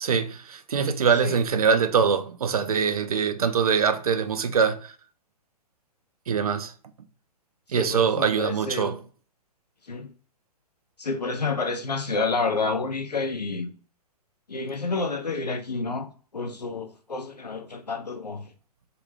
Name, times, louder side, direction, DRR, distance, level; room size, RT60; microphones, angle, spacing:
voice 1, 0.0-5.0 6.3-6.7 7.7-9.0, right 6 dB, 65° right, 0.4 m, -23 dB
voice 2, 7.8-8.9 9.9-10.1 11.0-13.7 14.5-18.5, left 3 dB, 85° left, 0.5 m, -29 dB
2.5 x 2.3 x 3.2 m
figure-of-eight pair, 120°, 20 cm